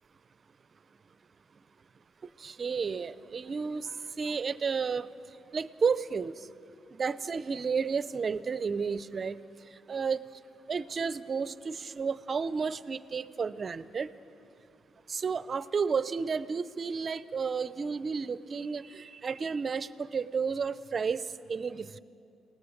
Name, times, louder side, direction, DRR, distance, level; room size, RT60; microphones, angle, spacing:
voice 1, 2.4-3.9 4.2-5.1 5.5-6.3 6.9-9.4 9.9-10.2 10.7-14.1 15.1-22.0, right 5 dB, 40° right, 15 dB, 0.7 m, -32 dB
29.0 x 18.5 x 6.6 m, 2.7 s
cardioid pair, 90°, 0 cm